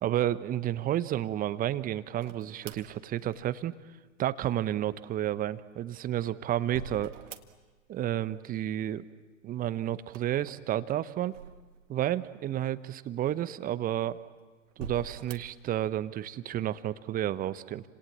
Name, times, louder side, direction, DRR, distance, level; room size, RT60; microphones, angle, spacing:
voice 1, 0.0-3.7 4.2-7.1 7.9-9.1 9.4-11.3 11.9-14.2 14.8-17.8, right 12 dB, 20° right, 14 dB, 0.9 m, -31 dB
sound 1, 2.2-3.9 5.7-8.9 10.0-12.2 12.8-12.9 13.7-14.2 14.7-15.7, right 5 dB, 65° right, 2.0 m, -46 dB
30.0 x 27.0 x 7.4 m, 1.3 s
figure-of-eight pair, 100°, 40 cm